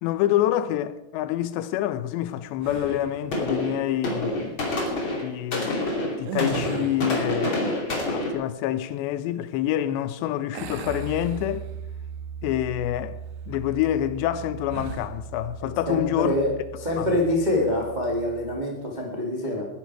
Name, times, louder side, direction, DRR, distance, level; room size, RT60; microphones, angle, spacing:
voice 1, 0.0-4.6 5.2-11.7 12.4-13.2 13.5-16.3 17.0-17.1, left 12 dB, 90° left, 3.0 m, -27 dB
sound 1, 2.6-3.3 6.2-7.3 10.5-12.0 12.4-12.6 14.7-15.2, right 5 dB, 90° right, 3.2 m, -36 dB
sound 2, 2.9-3.0 3.3-8.3, left 1 dB, 30° left, 3.0 m, -27 dB
Piano, 10.9-18.5, right 7 dB, 65° right, 2.0 m, -39 dB
voice 2, 15.9-16.5 16.8-19.7, left 1 dB, 25° right, 0.9 m, -25 dB
20.0 x 10.5 x 4.7 m
omnidirectional pair, 4.9 m